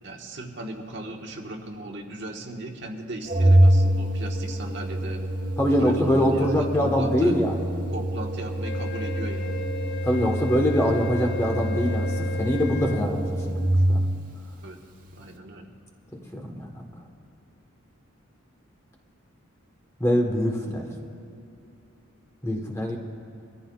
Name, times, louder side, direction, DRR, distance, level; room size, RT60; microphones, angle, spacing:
voice 1, 0.0-5.2 5.7-7.3 7.9-9.6 14.6-14.8 15.1-15.7, right 1 dB, 60° right, 1 dB, 1.3 m, -37 dB
Organ, 3.3-14.3, right 1 dB, 40° right, 1.4 m, -25 dB
voice 2, 5.6-7.6 10.0-13.2 13.5-13.6 13.9-14.0 16.3-16.9 20.0-20.9 22.4-23.0, equal, 15° left, 1 dB, 1.2 m, -23 dB
Wind instrument woodwind instrument, 8.6-13.1, left 5 dB, 55° left, 0.7 m, -36 dB
24.5 x 14.0 x 2.4 m, 2.7 s
head